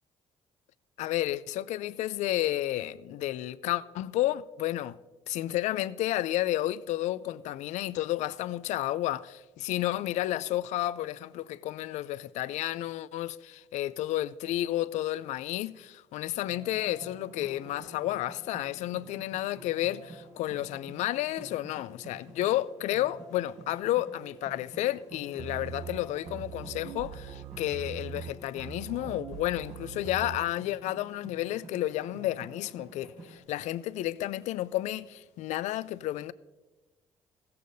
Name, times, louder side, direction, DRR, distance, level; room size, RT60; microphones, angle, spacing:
voice 1, 1.0-5.0 5.3-36.3, left 14 dB, 80° left, 0.4 m, -31 dB
sound 1, 16.3-33.4, right 2 dB, 80° right, 4.2 m, -50 dB
sound 2, 25.4-30.4, right 9 dB, 60° right, 0.6 m, -42 dB
15.5 x 14.0 x 2.7 m
cardioid pair, 80°, 12 cm